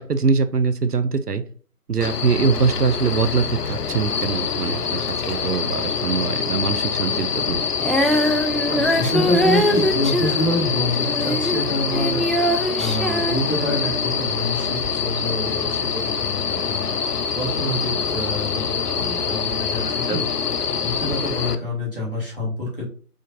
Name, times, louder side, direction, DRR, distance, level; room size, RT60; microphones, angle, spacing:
voice 1, 0.0-1.4 1.9-7.6 19.8-20.2, right 5 dB, 75° right, 11 dB, 0.7 m, -23 dB
sound 1, 2.0-21.6, left 6 dB, 75° left, 0.6 m, -25 dB
Female singing, 7.8-14.1 14.8-14.9, equal, ahead, 0.4 m, -23 dB
voice 2, 8.6-20.3 20.8-22.8, left 1 dB, 35° left, -6 dB, 1.7 m, -27 dB
5.0 x 2.5 x 3.9 m, 0.43 s
figure-of-eight pair, 175°, 47 cm